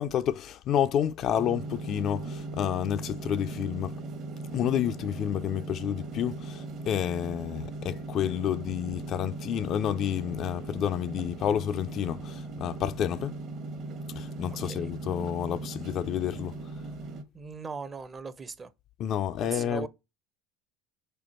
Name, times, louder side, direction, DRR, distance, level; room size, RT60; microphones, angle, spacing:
voice 1, 0.0-3.9 4.5-13.3 14.2-16.6 19.0-19.9, left 10 dB, 50° left, 0.4 m, -29 dB
sound 1, 1.4-17.2, right 2 dB, 50° right, 1.0 m, -39 dB
voice 2, 17.3-18.7 19.4-19.9, right 4 dB, 25° right, 0.5 m, -39 dB
4.4 x 2.3 x 4.2 m
hypercardioid pair, 75°, 0 cm